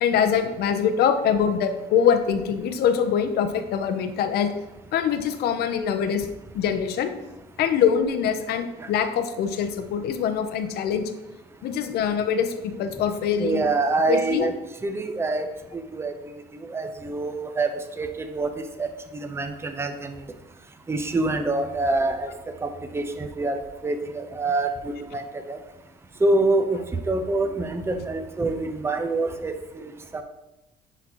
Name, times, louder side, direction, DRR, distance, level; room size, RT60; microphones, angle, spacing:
voice 1, 0.0-4.5 4.9-6.3 6.5-7.1 7.6-11.0 11.6-13.6 14.1-14.5, left 7 dB, 70° left, 8 dB, 0.7 m, -23 dB
voice 2, 13.4-14.5 14.8-15.5 15.9-16.1 16.7-17.7 18.0-18.9 19.1-20.1 20.9-22.3 22.6-22.7 22.9-25.2 25.5-25.6 26.2-26.8 27.1-29.5 29.8-30.2, right 2 dB, 15° right, 7 dB, 0.6 m, -25 dB
10.5 x 4.0 x 3.0 m, 1.0 s
cardioid pair, 110°, 17 cm